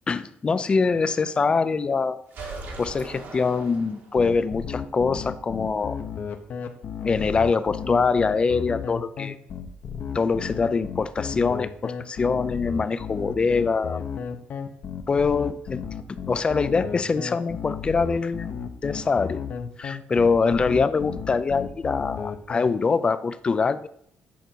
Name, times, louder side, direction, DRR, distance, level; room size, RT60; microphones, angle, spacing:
voice 1, 0.1-2.2 2.8-6.0 7.0-9.4 10.1-14.0 15.1-15.8 16.3-18.5 18.8-19.4 19.8-23.9, left 4 dB, 25° left, 14 dB, 0.5 m, -24 dB
sound 1, 2.3-4.4, right 3 dB, 60° right, 1.7 m, -39 dB
sound 2, 4.2-22.7, left 7 dB, 55° left, 0.9 m, -33 dB
9.3 x 5.1 x 4.5 m, 0.69 s
cardioid pair, 135°, 4 cm